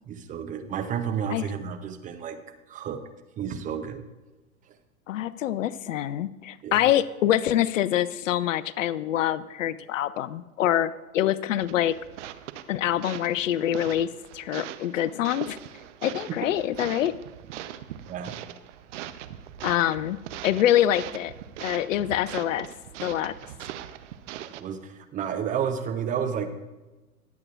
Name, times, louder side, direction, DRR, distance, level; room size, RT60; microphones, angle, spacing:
voice 1, 0.1-2.4 2.7-3.0 3.4-4.0 6.6-6.9 18.1-18.4 24.4-26.5, right 7 dB, 20° right, 7 dB, 0.6 m, -31 dB
voice 2, 5.1-12.0 12.7-15.6 16.0-17.1 19.6-20.2 20.4-21.3 21.6-22.7 23.0-23.3, left 12 dB, 60° left, 17 dB, 0.6 m, -25 dB
sound 1, 11.6-24.6, right 11 dB, 55° right, 0.8 m, -41 dB
20.0 x 8.2 x 2.4 m, 1.2 s
hypercardioid pair, 105°, 43 cm